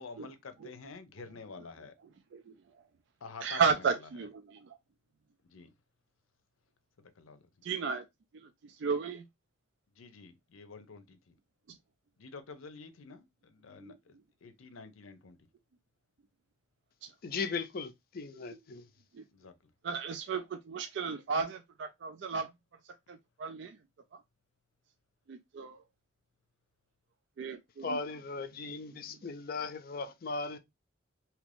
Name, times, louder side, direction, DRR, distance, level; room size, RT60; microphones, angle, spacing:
voice 1, 0.0-1.9 3.2-3.9 5.4-5.7 7.0-7.4 10.0-11.4 12.2-15.5 19.3-19.6, left 4 dB, 90° left, 0.6 m, -49 dB
voice 2, 3.4-4.7 7.6-8.0 8.3-9.2 11.7-11.8 13.8-14.0 17.0-17.1 18.5-18.6 19.1-19.2 19.8-22.5 23.1-23.8 24.1-24.2 25.3-25.8 27.4-28.0 28.9-29.0, right 5 dB, 60° right, 0.3 m, -34 dB
voice 3, 17.2-18.8 27.8-30.6, left 4 dB, 45° left, 0.4 m, -37 dB
2.8 x 2.5 x 3.3 m
head